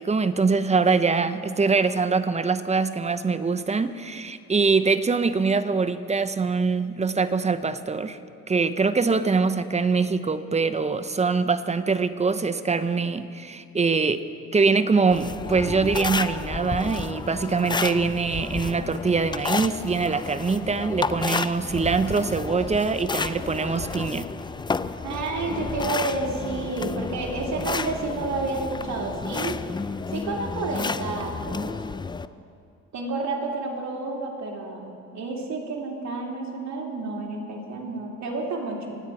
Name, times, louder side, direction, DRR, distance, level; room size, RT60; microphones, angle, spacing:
voice 1, 0.0-8.2 8.5-14.3 14.5-24.3, right 4 dB, 20° right, 11 dB, 0.7 m, -23 dB
sound 1, 15.1-32.3, left 4 dB, 15° left, 0.4 m, -31 dB
voice 2, 25.0-29.6 30.1-31.7 32.9-39.0, right 3 dB, 65° right, -1 dB, 2.9 m, -30 dB
25.5 x 9.1 x 4.7 m, 2.4 s
cardioid pair, 90°, 30 cm